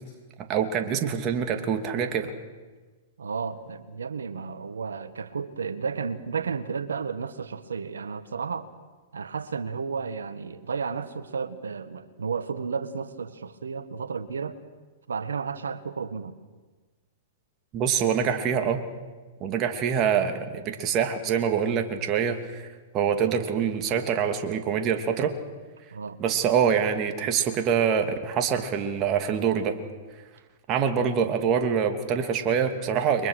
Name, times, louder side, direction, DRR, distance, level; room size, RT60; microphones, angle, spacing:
voice 1, 0.4-2.3 17.7-18.8 19.4-22.7 22.9-25.3 26.2-29.8 30.7-33.3, right 7 dB, 35° right, 5 dB, 2.7 m, -25 dB
voice 2, 3.2-8.7 9.1-14.6 15.1-16.3 25.9-26.2, right 5 dB, 80° right, 12 dB, 1.7 m, -32 dB
29.5 x 23.5 x 6.5 m, 1.3 s
hypercardioid pair, 110°, 0 cm